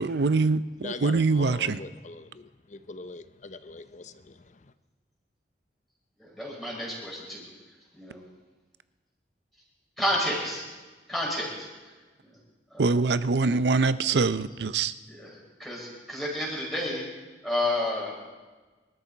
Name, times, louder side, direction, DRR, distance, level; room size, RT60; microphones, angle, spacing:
voice 1, 0.0-1.8 12.8-14.9, right 4 dB, 70° right, 14 dB, 0.6 m, -24 dB
voice 2, 0.8-4.7, left 3 dB, 40° left, 11 dB, 0.6 m, -42 dB
voice 3, 6.2-7.4 7.9-8.2 10.0-10.6 11.1-11.7 12.2-12.3 12.7-12.8 15.1-17.0 17.4-18.3, left 1 dB, ahead, -5 dB, 5.4 m, -31 dB
25.5 x 13.0 x 4.1 m, 1.3 s
head